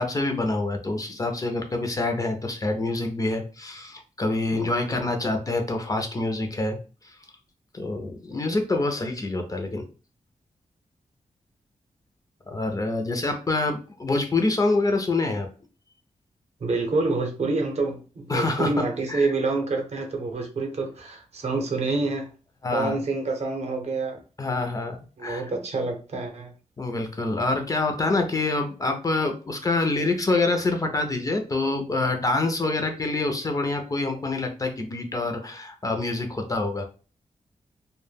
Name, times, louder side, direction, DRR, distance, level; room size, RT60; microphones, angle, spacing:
voice 1, 0.0-6.8 7.0-7.2 7.7-9.8 12.5-15.5 18.3-19.3 22.6-23.0 24.4-25.0 25.2-25.5 26.8-36.9, left 2 dB, 25° left, 0.4 m, -26 dB
voice 2, 4.5-5.1 16.6-22.3 22.7-24.2 25.2-26.5, right 3 dB, 55° right, 0.6 m, -27 dB
2.1 x 2.1 x 3.2 m
wide cardioid pair, 145°, 13 cm